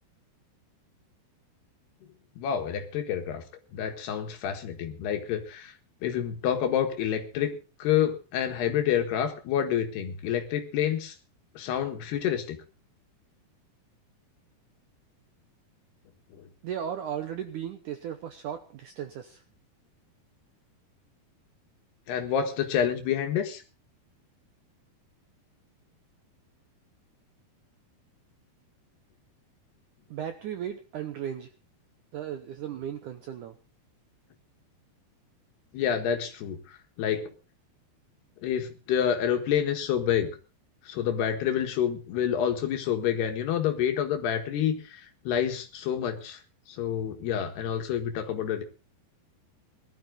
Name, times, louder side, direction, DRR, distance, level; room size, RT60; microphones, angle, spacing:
voice 1, 2.4-3.4 3.7-5.7 6.0-11.2 11.6-12.6 16.3-16.5 22.1-23.6 35.7-37.3 38.4-40.3 40.9-46.4 46.7-48.6, left 9 dB, 75° left, 5 dB, 3.7 m, -28 dB
voice 2, 16.6-19.4 30.1-31.5 32.1-33.6, right 9 dB, 75° right, 8 dB, 1.8 m, -36 dB
19.5 x 12.5 x 3.9 m, 0.33 s
omnidirectional pair, 4.8 m